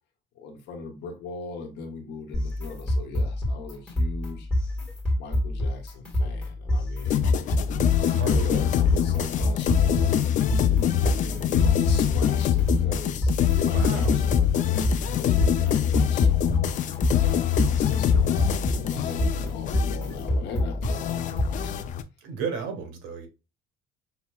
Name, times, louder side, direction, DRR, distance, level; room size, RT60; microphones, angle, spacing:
voice 1, 0.3-4.5 5.2-7.3 7.9-10.2 11.0-16.3 17.1-21.9, left 3 dB, 65° left, 1.1 m, -39 dB
sound 1, 2.3-21.9, left 1 dB, 5° left, 1.7 m, -27 dB
instant rave, 7.0-22.0, left 10 dB, 45° left, 0.4 m, -24 dB
voice 2, 8.1-8.7 13.6-14.2 22.2-23.3, right 6 dB, 90° right, 1.3 m, -34 dB
5.7 x 2.9 x 2.3 m
cardioid pair, 155°, 19 cm